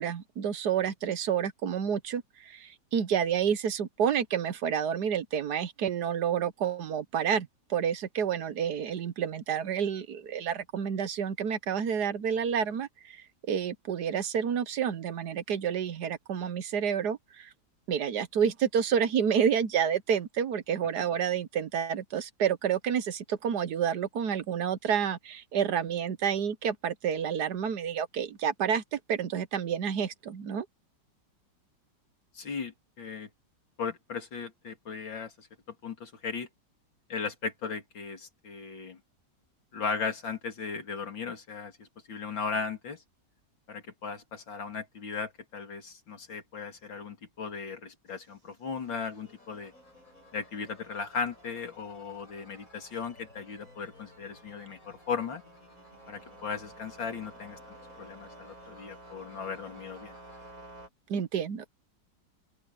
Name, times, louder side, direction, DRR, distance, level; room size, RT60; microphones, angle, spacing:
voice 1, 0.0-17.5 17.9-30.7 61.1-61.7, right 8 dB, 65° right, 1.4 m, -29 dB
voice 2, 32.3-33.3 33.8-35.5 35.8-36.5 37.1-39.0 39.7-43.0 43.7-49.7 50.3-55.4 56.1-57.6 58.0-60.1, left 5 dB, 90° left, 3.5 m, -37 dB
sound 1, 48.1-60.9, right 1 dB, 50° right, 8.6 m, -53 dB
sound 2, 48.7-60.5, left 2 dB, 45° left, 6.6 m, -58 dB
open air
omnidirectional pair, 2.0 m